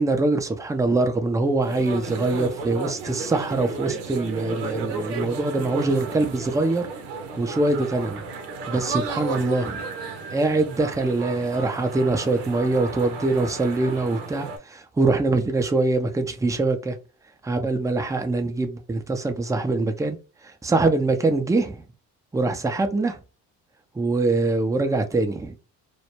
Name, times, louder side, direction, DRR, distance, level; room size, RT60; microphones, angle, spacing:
voice 1, 0.0-6.9 7.4-8.3 8.7-9.8 10.3-17.0 17.4-20.2 20.4-21.8 22.3-23.2 24.0-25.5, right 2 dB, 10° right, 0.4 m, -23 dB
sound 1, 1.6-14.6, right 4 dB, 80° right, 0.7 m, -33 dB
2.2 x 2.0 x 2.9 m
supercardioid pair, 60°, 43 cm